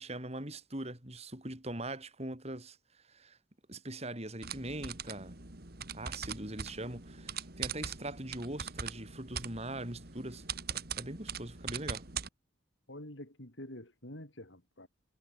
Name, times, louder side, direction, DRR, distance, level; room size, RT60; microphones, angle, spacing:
voice 1, 0.0-2.8 3.1-3.4 3.7-5.4 5.9-10.4 10.7-12.1, right 1 dB, 35° right, 4.3 m, -41 dB
sound 1, 4.4-12.3, right 7 dB, 50° right, 2.8 m, -41 dB
voice 2, 12.9-14.9, left 1 dB, 70° left, 5.6 m, -47 dB
head